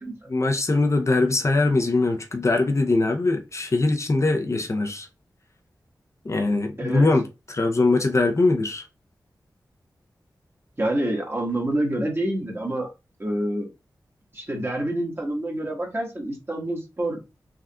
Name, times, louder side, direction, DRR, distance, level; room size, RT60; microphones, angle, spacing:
voice 1, 0.3-5.1 6.2-8.8, left 2 dB, 40° left, 0.5 m, -22 dB
voice 2, 10.8-12.9 13.2-13.7 14.3-17.2, right 1 dB, 30° right, 1.3 m, -27 dB
3.5 x 2.5 x 2.3 m
cardioid pair, 45°, 7 cm